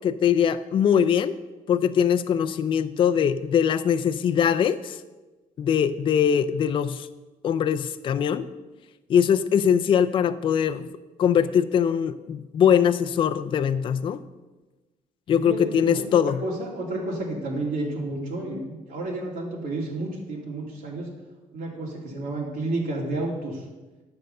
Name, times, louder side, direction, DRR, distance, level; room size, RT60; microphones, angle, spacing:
voice 1, 0.0-1.4 1.7-5.0 5.6-7.1 7.4-8.5 9.1-10.9 11.2-14.2 15.3-16.4, left 8 dB, 35° left, 11 dB, 0.4 m, -22 dB
voice 2, 15.3-21.1 21.5-23.7, right 2 dB, 70° right, -3 dB, 2.6 m, -31 dB
11.0 x 6.6 x 6.5 m, 1.2 s
cardioid pair, 170°, 15 cm